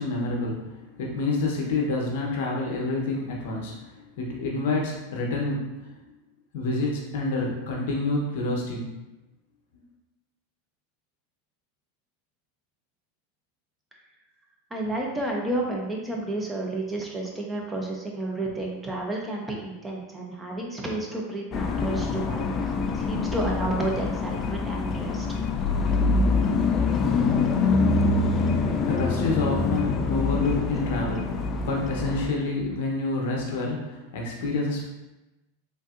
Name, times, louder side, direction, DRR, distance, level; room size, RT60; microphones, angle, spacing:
voice 1, 0.0-5.9 6.5-8.9 28.9-34.9, left 2 dB, 65° left, -1 dB, 0.7 m, -28 dB
voice 2, 14.7-25.3, right 2 dB, 10° right, -1 dB, 0.6 m, -31 dB
sound 1, 21.5-32.3, left 4 dB, 35° left, 0.3 m, -25 dB
3.5 x 2.6 x 2.4 m, 1.0 s
hypercardioid pair, 95°, 0 cm